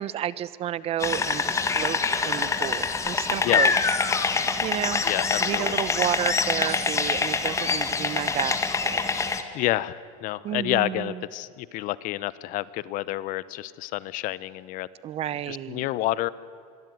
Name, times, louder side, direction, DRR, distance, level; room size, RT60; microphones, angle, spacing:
voice 1, 0.0-3.7 4.6-5.0 5.4-9.0 10.4-11.2 15.0-15.9, right 11 dB, 35° right, 18 dB, 0.9 m, -31 dB
sound 1, 1.0-9.4, left 4 dB, 15° left, 1.9 m, -25 dB
voice 2, 5.0-5.8 9.5-14.9 15.5-16.3, left 16 dB, 45° left, 18 dB, 1.0 m, -29 dB
26.0 x 22.5 x 9.5 m, 2.2 s
supercardioid pair, 140°, 18 cm